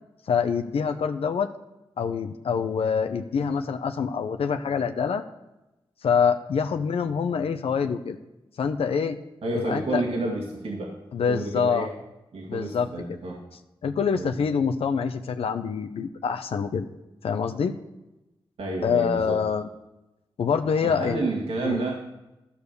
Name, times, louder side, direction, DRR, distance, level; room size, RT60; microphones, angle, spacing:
voice 1, 0.3-1.5 2.0-5.2 6.0-8.2 8.6-9.2 9.5-10.0 11.1-11.9 12.5-13.2 13.8-16.9 17.2-17.8 18.8-19.7 20.4-21.2 21.6-21.8, left 6 dB, 90° left, 6 dB, 0.7 m, -25 dB
voice 2, 9.4-10.9 11.3-11.9 12.3-13.4 14.1-14.3 18.6-19.4 20.8-22.0, right 2 dB, 85° right, -1 dB, 2.1 m, -30 dB
13.0 x 7.1 x 6.8 m, 0.97 s
cardioid pair, 70°, 10 cm